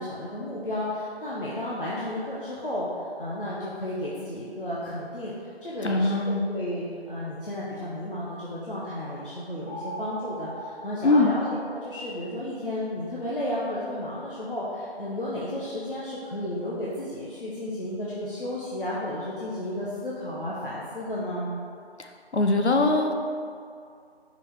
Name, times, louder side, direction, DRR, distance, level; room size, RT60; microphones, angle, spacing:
voice 1, 0.0-2.9 3.2-5.3 5.6-21.6, left 1 dB, 55° left, -7 dB, 1.0 m, -33 dB
voice 2, 5.8-6.4 11.0-11.3 22.3-23.1, left 2 dB, 90° left, 4 dB, 0.8 m, -21 dB
sound 1, 9.7-12.1, right 1 dB, 10° left, 1.5 m, -39 dB
5.6 x 5.3 x 3.5 m, 2.3 s
figure-of-eight pair, 170°, 33 cm